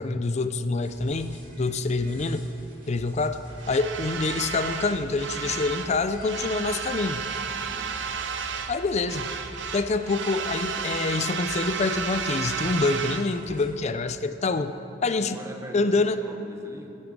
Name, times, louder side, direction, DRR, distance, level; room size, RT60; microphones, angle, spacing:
voice 1, 0.0-2.5 2.9-3.4 3.7-7.2 8.7-9.3 9.7-14.7 15.0-15.4 15.7-16.2, left 3 dB, 40° left, 11 dB, 0.5 m, -26 dB
sound 1, 0.8-13.7, equal, 50° right, 2.5 m, -46 dB
sound 2, 3.6-5.9 6.2-8.8 9.0-13.3, right 6 dB, 80° right, 0.7 m, -32 dB
voice 2, 7.6-8.0 15.2-16.9, equal, 15° right, 2 dB, 1.0 m, -42 dB
12.0 x 8.6 x 6.2 m, 3.0 s
head